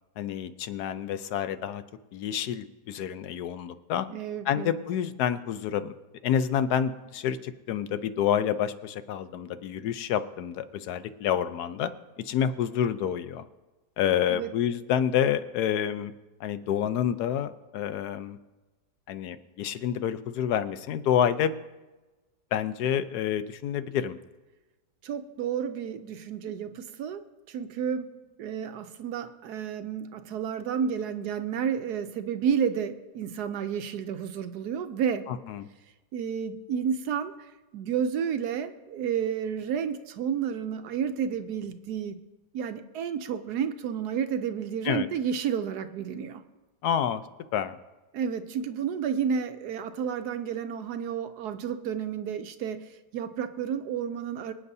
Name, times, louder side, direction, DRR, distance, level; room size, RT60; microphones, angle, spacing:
voice 1, 0.2-1.8 2.1-4.1 4.4-5.9 6.2-11.9 12.2-13.4 14.0-16.1 16.4-18.4 19.1-21.5 22.5-24.2 35.3-35.7 44.8-45.1 46.8-47.2 47.5-47.8, left 9 dB, 75° left, 12 dB, 1.2 m, -28 dB
voice 2, 4.1-4.7 14.3-14.5 25.0-27.2 27.5-28.1 28.4-35.3 36.1-37.3 37.7-42.2 42.5-46.4 48.1-54.5, right 7 dB, 75° right, 9 dB, 1.2 m, -31 dB
25.0 x 8.6 x 2.7 m, 1.1 s
omnidirectional pair, 1.8 m